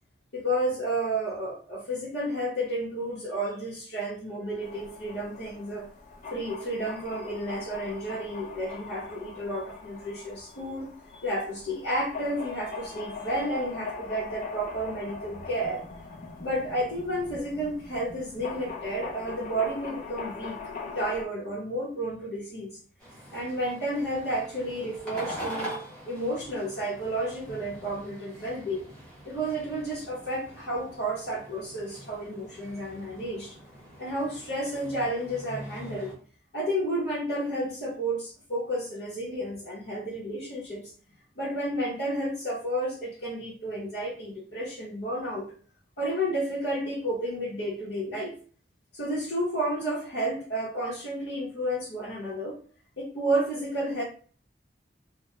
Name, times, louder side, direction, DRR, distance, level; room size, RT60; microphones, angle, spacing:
voice 1, 0.3-5.9 6.3-10.9 11.2-15.8 16.4-20.6 20.9-22.7 23.3-25.8 26.1-28.9 29.2-33.5 34.0-36.1 36.5-40.9 41.4-45.5 46.0-48.3 48.9-52.6 53.0-54.0, right 1 dB, 85° left, -8 dB, 0.9 m, -31 dB
sound 1, 4.6-21.2, left 4 dB, 45° left, 0.4 m, -41 dB
sound 2, 23.0-36.1, equal, 5° left, 0.9 m, -43 dB
2.2 x 2.1 x 2.9 m, 0.42 s
head